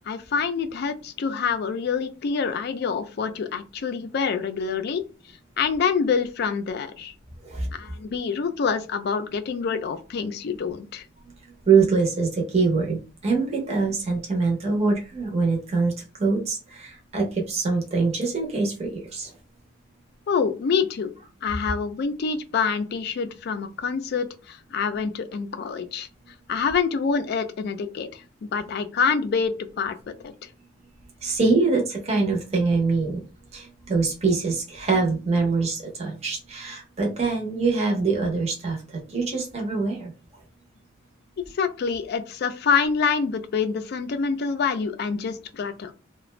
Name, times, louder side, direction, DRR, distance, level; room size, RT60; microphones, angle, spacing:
voice 1, 0.1-5.0 5.6-7.1 7.7-11.0 20.3-21.1 21.4-26.1 26.5-30.3 41.4-45.9, left 5 dB, 55° left, 9 dB, 0.3 m, -26 dB
voice 2, 11.7-19.3 31.2-33.2 33.5-38.8 39.1-40.1, right 4 dB, 35° right, 0 dB, 0.6 m, -24 dB
2.4 x 2.1 x 3.1 m, 0.33 s
head